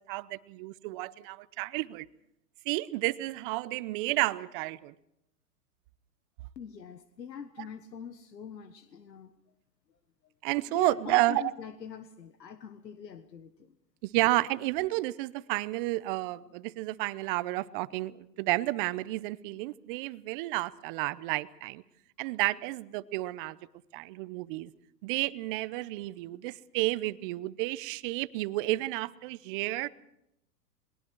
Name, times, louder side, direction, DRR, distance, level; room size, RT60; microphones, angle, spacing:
voice 1, 0.1-2.1 2.7-4.9 7.6-7.7 10.4-11.5 14.0-21.8 22.2-23.6 23.9-24.7 25.0-29.9, right 19 dB, 35° right, 17 dB, 0.7 m, -31 dB
voice 2, 6.5-9.3 10.7-13.7, left 7 dB, 90° left, 10 dB, 1.5 m, -44 dB
28.0 x 21.5 x 4.7 m, 0.79 s
hypercardioid pair, 125°, 49 cm